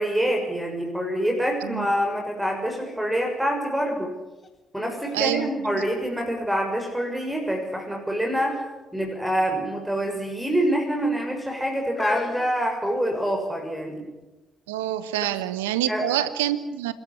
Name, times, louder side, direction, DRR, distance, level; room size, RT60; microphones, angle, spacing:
voice 1, 0.0-4.1 4.7-8.6 8.9-14.1 15.9-16.0, equal, 5° right, 2 dB, 6.4 m, -26 dB
sound 1, 4.4-4.5 4.9-6.5 7.0-7.5 8.4-8.7 9.0-9.2 10.1-10.7 11.4-13.5 14.2-14.3, left 4 dB, 35° left, 4.0 m, -38 dB
voice 2, 5.1-5.8 14.7-16.9, right 12 dB, 90° right, 14 dB, 1.2 m, -27 dB
26.5 x 14.0 x 10.0 m, 1.1 s
hypercardioid pair, 50°, 0 cm